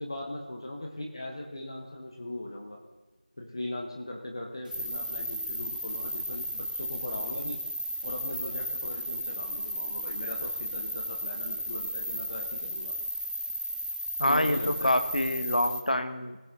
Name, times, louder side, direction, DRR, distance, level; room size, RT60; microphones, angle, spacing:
voice 1, 0.0-2.8 3.4-7.6 8.0-13.0 14.3-14.9, left 1 dB, 35° left, 1 dB, 1.2 m, -39 dB
sound 1, 4.7-15.8, equal, 90° right, 2.2 m, -34 dB
voice 2, 14.2-16.4, left 1 dB, 70° left, 9 dB, 1.2 m, -26 dB
19.5 x 7.9 x 3.7 m, 1.2 s
figure-of-eight pair, 175°, 5 cm